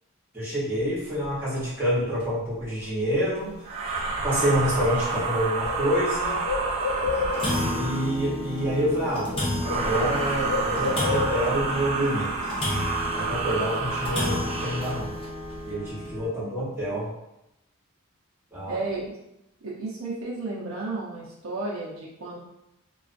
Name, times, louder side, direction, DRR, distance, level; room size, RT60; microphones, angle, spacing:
voice 1, 0.3-3.6 4.2-6.4 7.6-9.3 9.7-12.3 13.1-15.1 15.6-17.1 18.5-18.8, equal, 10° right, -9 dB, 0.9 m, -27 dB
sound 1, 1.1-1.2 1.7-1.8 2.2-2.3 3.4-3.5 4.0-4.1 4.5-4.6 5.1-5.2 6.3-6.5 6.8-6.9 7.1-16.3, left 1 dB, 25° left, 0.7 m, -32 dB
sound 2, 3.6-8.2 9.6-15.0, right 4 dB, 30° right, 0.3 m, -29 dB
Bird, 5.2-7.7 8.8-9.0 9.3-11.7, left 4 dB, 85° left, 0.4 m, -31 dB
voice 2, 18.7-19.2 19.6-22.4, right 3 dB, 75° right, -4 dB, 0.6 m, -33 dB
2.4 x 2.4 x 2.5 m, 0.86 s
head